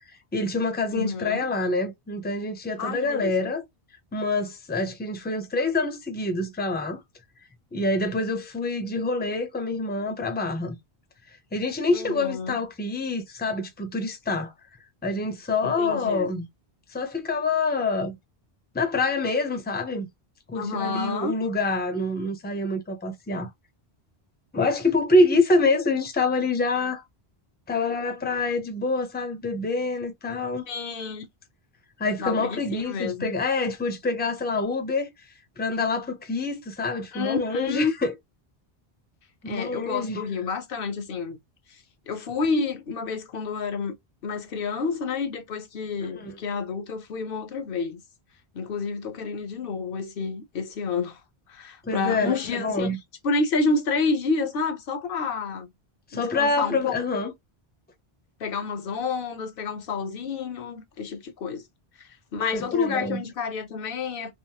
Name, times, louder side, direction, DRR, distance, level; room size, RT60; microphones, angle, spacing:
voice 1, 0.3-3.6 4.1-7.0 7.7-10.8 11.5-14.5 15.0-16.5 16.9-18.2 18.7-20.1 20.5-23.5 24.5-27.0 27.7-30.6 32.0-35.1 35.6-38.1 39.4-40.2 46.0-46.4 51.8-53.0 56.1-57.3 62.5-63.2, left 2 dB, 10° left, 0.5 m, -26 dB
voice 2, 0.9-1.5 2.8-3.5 11.9-12.6 15.6-16.3 20.5-21.4 30.7-31.2 32.2-33.3 37.1-37.9 39.5-41.4 42.1-43.9 44.2-48.0 48.5-51.2 51.5-52.9 53.2-55.7 56.1-56.9 58.4-61.6 62.0-64.3, left 4 dB, 65° left, 0.9 m, -29 dB
3.5 x 2.0 x 2.8 m
omnidirectional pair, 1.0 m